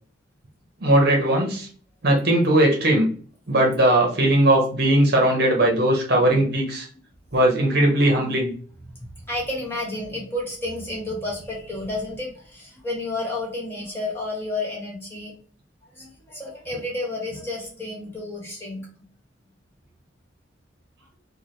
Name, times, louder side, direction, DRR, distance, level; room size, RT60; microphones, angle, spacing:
voice 1, 0.8-1.7 2.0-3.1 3.5-6.9 7.3-8.5, right 1 dB, 55° right, 0 dB, 0.9 m, -19 dB
voice 2, 6.1-6.4 7.4-7.5 9.0-15.3 15.8-18.9, left 2 dB, 10° left, -3 dB, 1.3 m, -31 dB
4.7 x 2.2 x 3.1 m, 0.43 s
head